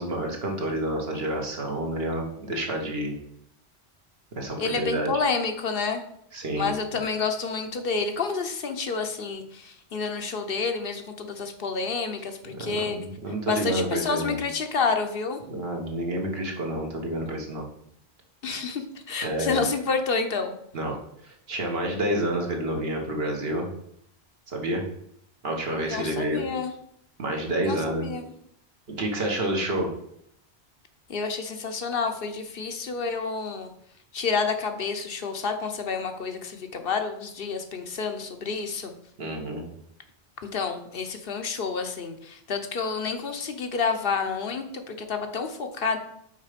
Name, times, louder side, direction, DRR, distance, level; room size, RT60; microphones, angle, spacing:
voice 1, 0.0-3.2 4.4-5.1 6.3-6.7 12.5-14.4 15.5-17.7 19.2-19.7 20.7-21.0 21.2-23.7 24.5-24.8 25.4-26.4 27.2-28.0 28.9-29.9 39.2-39.6, right 1 dB, 65° right, 1 dB, 1.5 m, -29 dB
voice 2, 4.6-6.0 6.5-13.0 13.5-15.4 18.4-20.5 25.9-26.7 27.7-28.2 31.1-33.7 34.1-38.9 40.5-46.0, left 5 dB, 60° left, 6 dB, 0.9 m, -29 dB
5.7 x 4.3 x 5.0 m, 0.72 s
omnidirectional pair, 1.1 m